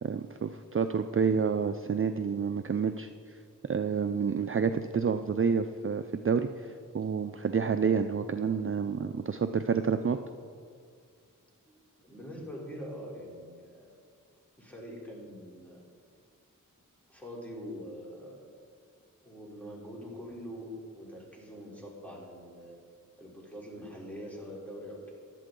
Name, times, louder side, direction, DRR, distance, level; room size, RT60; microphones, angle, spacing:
voice 1, 0.0-3.4 3.7-10.2, right 6 dB, 40° right, 8 dB, 0.4 m, -29 dB
voice 2, 12.0-14.0 14.6-15.9 17.1-18.5 19.2-22.8 23.2-25.1, equal, 5° left, -4 dB, 3.5 m, -44 dB
16.0 x 11.5 x 3.8 m, 2.2 s
wide cardioid pair, 65°, 33 cm